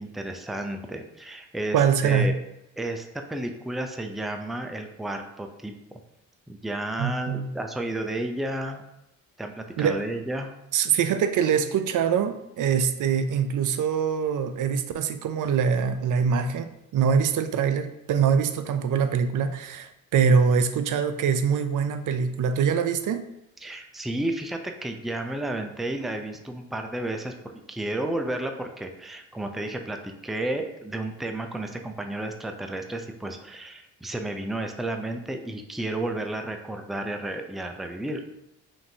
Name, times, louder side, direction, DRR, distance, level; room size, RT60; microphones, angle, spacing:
voice 1, 0.0-2.4 2.8-6.0 6.5-8.8 9.4-10.5 23.6-38.4, right 1 dB, ahead, 5 dB, 0.4 m, -32 dB
voice 2, 1.7-2.3 7.0-7.5 9.8-10.0 10.7-23.3, right 6 dB, 55° right, 10 dB, 0.5 m, -24 dB
5.7 x 2.6 x 2.7 m, 0.86 s
hypercardioid pair, 55°, 38 cm